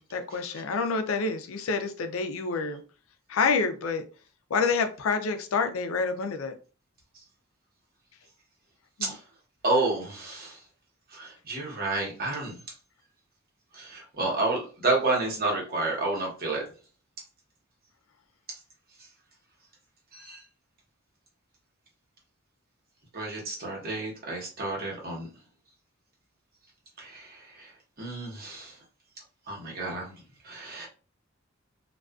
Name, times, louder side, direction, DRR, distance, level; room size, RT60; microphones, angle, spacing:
voice 1, 0.0-2.8 3.3-4.0 4.5-6.6 9.0-9.1, left 4 dB, 80° left, 0.4 m, -28 dB
voice 2, 9.6-10.6 11.1-12.6 13.7-16.6 20.1-20.4 23.1-25.3 27.0-27.7 28.0-28.8 29.5-30.1 30.4-30.9, right 2 dB, 50° right, 1.0 m, -30 dB
2.3 x 2.3 x 2.3 m
head